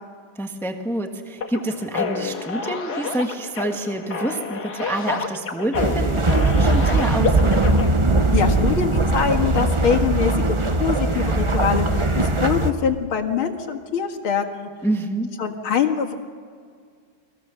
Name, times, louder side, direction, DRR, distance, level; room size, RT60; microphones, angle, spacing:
voice 1, 0.3-7.9 14.8-15.3, right 1 dB, ahead, 4 dB, 1.4 m, -27 dB
sound 1, 1.4-7.9, left 5 dB, 50° left, 2.0 m, -29 dB
sound 2, 5.7-12.7, right 2 dB, 35° right, 0.4 m, -20 dB
voice 2, 8.3-14.7 15.4-16.1, left 7 dB, 80° left, 3 dB, 2.6 m, -23 dB
29.5 x 21.0 x 7.1 m, 2.1 s
omnidirectional pair, 2.3 m